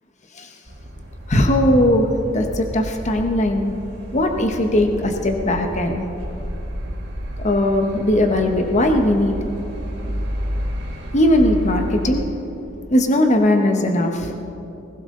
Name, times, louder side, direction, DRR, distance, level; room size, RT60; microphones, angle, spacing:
sound 1, 0.7-12.2, equal, 90° right, 3.3 m, -31 dB
voice 1, 1.3-3.8 4.1-6.0 7.4-9.4 11.1-12.2 12.9-14.3, left 1 dB, 40° left, 4 dB, 1.1 m, -18 dB
21.0 x 16.0 x 3.8 m, 2.8 s
head